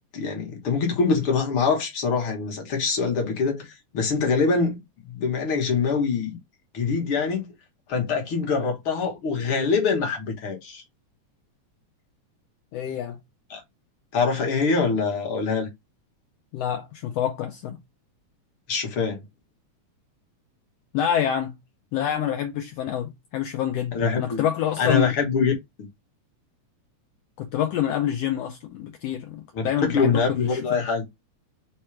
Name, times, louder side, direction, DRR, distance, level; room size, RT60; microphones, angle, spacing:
voice 1, 0.1-4.8 5.1-6.4 6.7-7.5 7.9-10.8 13.5-13.6 14.1-15.7 18.7-19.2 23.9-24.4 24.8-25.5 25.8-25.9 29.5-31.0, left 5 dB, 60° left, 1.5 m, -24 dB
voice 2, 12.7-13.2 16.5-17.8 20.9-21.6 21.9-25.2 27.4-30.9, left 10 dB, 85° left, 1.4 m, -27 dB
4.7 x 2.2 x 4.4 m
omnidirectional pair, 3.5 m